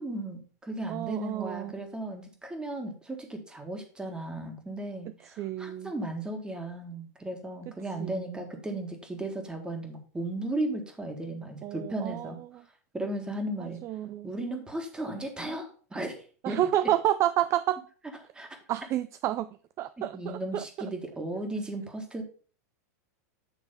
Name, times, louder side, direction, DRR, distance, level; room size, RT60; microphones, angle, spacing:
voice 1, 0.0-12.4 12.9-13.8 14.2-16.6 18.3-18.5 20.1-22.2, right 1 dB, 10° right, 4 dB, 1.7 m, -35 dB
voice 2, 0.9-1.7 5.4-5.9 8.0-8.4 11.6-12.3 13.6-14.3 16.4-17.8 18.7-19.5 19.8-20.9, right 12 dB, 35° right, 14 dB, 0.3 m, -30 dB
9.1 x 3.4 x 5.3 m, 0.41 s
hypercardioid pair, 125°, 9 cm